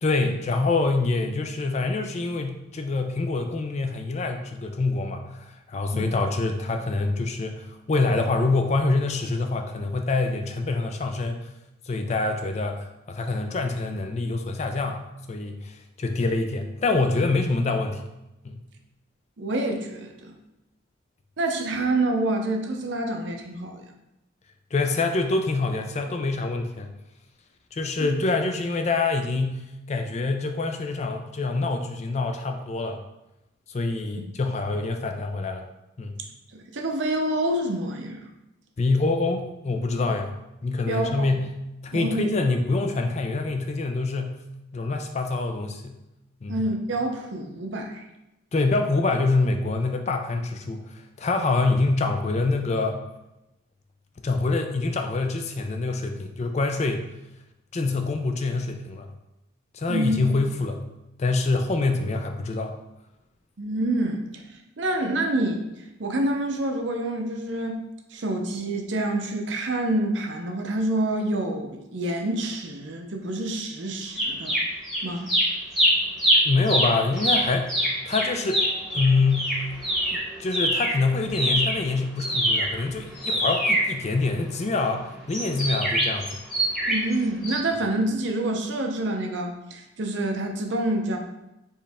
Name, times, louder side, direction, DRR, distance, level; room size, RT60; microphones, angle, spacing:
voice 1, 0.0-11.5 11.8-15.0 15.3-18.0 18.4-18.6 24.7-26.9 27.7-33.0 33.7-35.6 36.0-36.1 38.8-40.3 40.6-41.5 41.8-44.4 44.7-46.0 46.4-46.6 48.5-53.0 54.2-57.0 57.7-59.1 59.7-60.8 61.2-62.7 76.4-77.7 78.1-78.6 78.9-79.6 80.1-86.4, left 3 dB, 35° left, 5 dB, 0.4 m, -25 dB
voice 2, 19.4-20.3 21.4-23.8 28.0-28.1 36.5-38.3 40.9-41.3 41.9-42.3 46.5-48.0 59.9-60.2 63.6-64.2 64.8-65.6 66.0-67.8 68.1-74.6 75.0-75.3 86.9-91.2, right 1 dB, 65° right, 3 dB, 0.6 m, -27 dB
sound 1, 74.2-75.0 75.3-81.0 81.3-84.6 85.3-87.1 87.4-87.6, equal, ahead, 1.0 m, -24 dB
4.5 x 3.2 x 3.5 m, 0.92 s
head